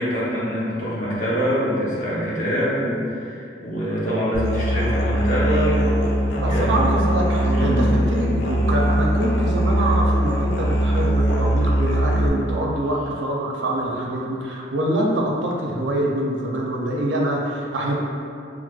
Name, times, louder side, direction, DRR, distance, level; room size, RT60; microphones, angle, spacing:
voice 1, 0.0-6.0 6.5-7.0 7.5-7.8, equal, 45° left, -7 dB, 0.8 m, -24 dB
Musical instrument, 4.3-12.3, right 1 dB, 85° left, 0.5 m, -21 dB
voice 2, 6.3-18.0, right 1 dB, 85° right, -2 dB, 0.5 m, -25 dB
4.6 x 2.0 x 2.3 m, 2.5 s
head